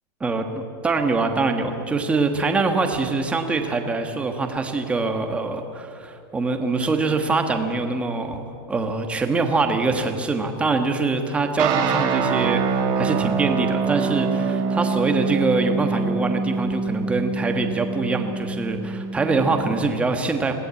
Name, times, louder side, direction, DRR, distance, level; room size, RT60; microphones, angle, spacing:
voice 1, 0.2-20.5, right 3 dB, 10° right, 5 dB, 1.4 m, -24 dB
sound 1, 11.6-19.8, right 5 dB, 35° right, 2.1 m, -25 dB
22.0 x 17.0 x 8.4 m, 2.4 s
supercardioid pair, 165°, 13 cm